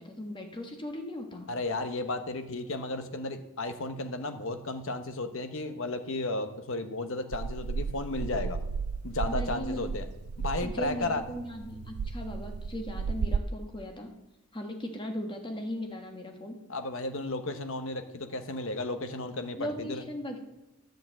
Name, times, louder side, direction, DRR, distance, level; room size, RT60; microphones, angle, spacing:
voice 1, 0.0-1.5 9.3-10.1 10.6-14.1 14.5-16.5 19.6-20.4, equal, 20° left, 3 dB, 1.4 m, -38 dB
voice 2, 1.5-8.6 9.0-10.0 10.4-11.2 16.7-20.0, left 2 dB, 60° left, 8 dB, 1.0 m, -34 dB
sound 1, 7.3-13.4, right 5 dB, 75° right, 0.4 m, -34 dB
11.0 x 6.5 x 7.7 m, 1.0 s
head